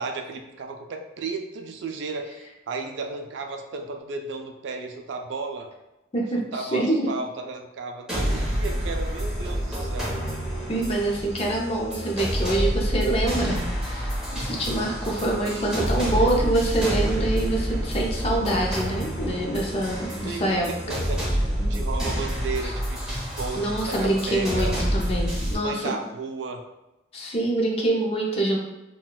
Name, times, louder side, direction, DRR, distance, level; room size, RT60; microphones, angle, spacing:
voice 1, 0.0-5.7 6.5-10.1 15.4-16.3 20.2-24.7 25.6-26.6, right 3 dB, 65° right, 4 dB, 0.3 m, -34 dB
voice 2, 6.1-7.1 10.7-20.7 22.6-22.7 23.6-25.9 27.1-28.6, right 1 dB, 30° left, -1 dB, 0.5 m, -25 dB
sound 1, 8.1-25.5, equal, 5° right, 1.0 m, -28 dB
sound 2, 14.4-15.6 15.9-17.2 17.5-18.8 19.1-21.9, equal, 30° right, 1.2 m, -40 dB
3.9 x 2.2 x 2.2 m, 0.99 s
head